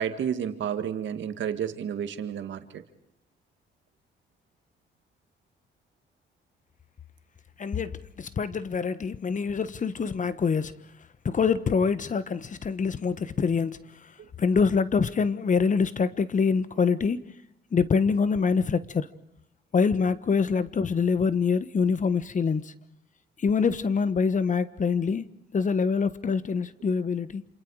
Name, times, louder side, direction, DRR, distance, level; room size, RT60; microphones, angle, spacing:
voice 1, 0.0-2.8, right 8 dB, 70° right, 1.9 m, -31 dB
voice 2, 7.6-10.7 11.2-13.8 14.4-17.2 17.7-19.1 19.7-22.7 23.4-25.2 25.5-27.4, left 5 dB, 40° left, 1.3 m, -25 dB
28.0 x 27.0 x 4.9 m
cardioid pair, 90°, 20 cm